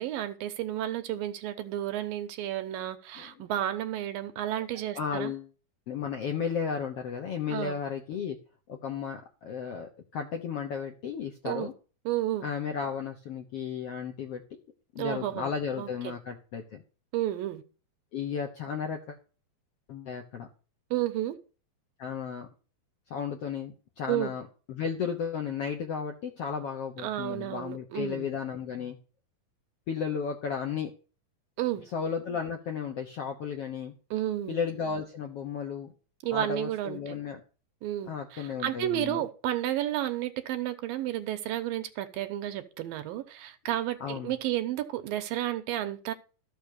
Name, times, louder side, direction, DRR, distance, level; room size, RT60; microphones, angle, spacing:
voice 1, 0.0-5.3 7.5-7.8 11.4-11.7 12.1-12.5 15.0-15.5 15.8-16.1 17.1-17.6 20.9-21.4 24.1-24.3 27.0-28.3 31.6-31.8 34.1-34.6 36.2-37.2 37.8-46.1, right 13 dB, 75° right, 2.7 m, -32 dB
voice 2, 4.9-5.5 5.9-8.4 8.7-11.7 12.4-14.4 14.9-16.8 18.1-19.2 19.9-20.5 22.0-22.5 23.1-29.0 29.9-30.9 31.9-33.9 34.5-35.9 36.3-37.4 38.1-39.2 44.0-44.3, left 6 dB, 65° left, 1.5 m, -34 dB
13.5 x 5.9 x 6.6 m
omnidirectional pair, 4.2 m